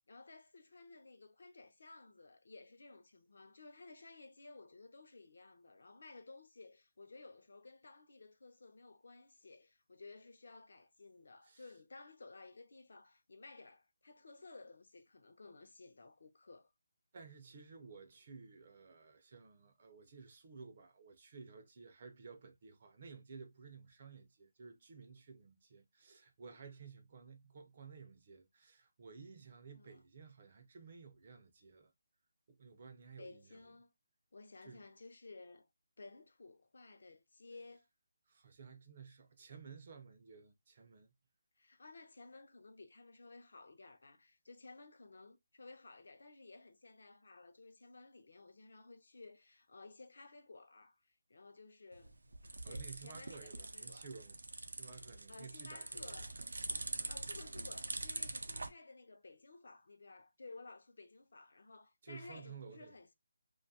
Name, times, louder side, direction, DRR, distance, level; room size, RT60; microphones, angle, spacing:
voice 1, 0.1-16.7 29.7-30.0 33.2-33.9 34.3-35.7 36.0-37.9 41.6-52.2 52.6-54.1 55.3-56.3 57.1-63.1, left 3 dB, 60° left, 0.5 m, -56 dB
voice 2, 17.1-31.9 32.5-33.7 34.6-34.8 38.3-41.1 52.6-54.4 54.7-56.3 56.9-57.1 62.0-63.0, right 5 dB, 30° right, 0.4 m, -54 dB
sound 1, 51.9-58.7, right 2 dB, 90° right, 0.4 m, -44 dB
2.6 x 2.3 x 2.6 m
hypercardioid pair, 175°, 0 cm